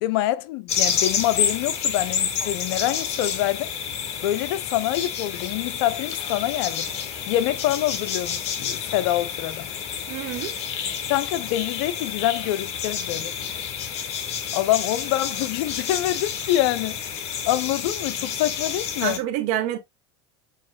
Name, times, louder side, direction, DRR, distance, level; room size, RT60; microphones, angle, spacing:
voice 1, 0.0-3.7 4.2-6.9 7.3-9.7 11.1-13.3 14.5-17.0 17.5-19.2, left 14 dB, 65° left, 0.5 m, -25 dB
sound 1, 0.7-19.2, left 7 dB, 50° left, 1.1 m, -29 dB
voice 2, 10.1-10.5 19.0-19.8, right 12 dB, 60° right, 0.9 m, -27 dB
7.4 x 2.9 x 2.2 m
hypercardioid pair, 95°, 14 cm